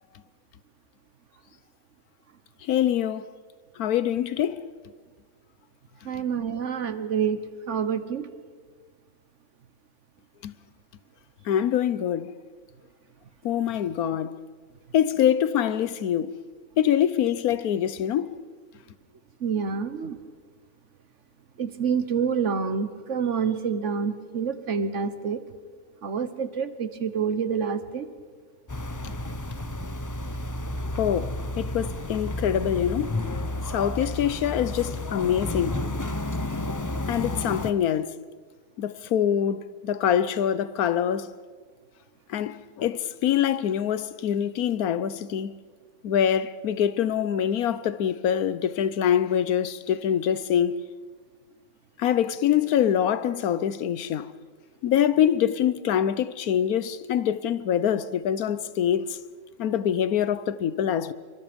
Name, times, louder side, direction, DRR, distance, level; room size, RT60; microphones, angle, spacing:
voice 1, 2.6-3.3 3.8-4.7 10.4-10.5 11.4-12.3 13.4-14.3 14.9-16.3 16.8-18.4 31.0-33.2 33.7-35.8 37.1-38.2 38.8-41.3 42.3-45.6 46.0-50.8 52.0-54.3 54.8-59.1 59.6-61.1, left 9 dB, 85° left, 1.3 m, -24 dB
voice 2, 6.0-7.4 7.7-8.3 19.4-20.2 21.6-25.4 26.0-28.1, right 6 dB, 55° right, 1.4 m, -27 dB
sound 1, 28.7-37.7, left 1 dB, 20° left, 0.6 m, -31 dB
26.5 x 24.0 x 5.2 m
omnidirectional pair, 1.5 m